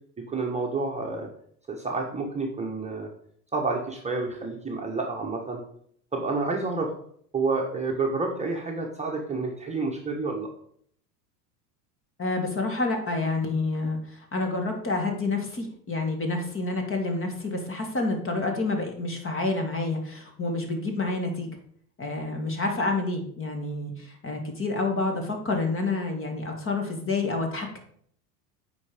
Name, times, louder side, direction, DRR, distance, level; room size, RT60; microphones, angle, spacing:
voice 1, 0.3-1.3 1.7-3.1 3.5-5.6 6.1-6.9 7.3-10.5, right 3 dB, 15° right, -1 dB, 1.3 m, -29 dB
voice 2, 12.2-21.5 22.0-27.8, left 3 dB, 25° left, 3 dB, 2.0 m, -28 dB
8.4 x 4.8 x 5.0 m, 0.62 s
hypercardioid pair, 95°, 50 cm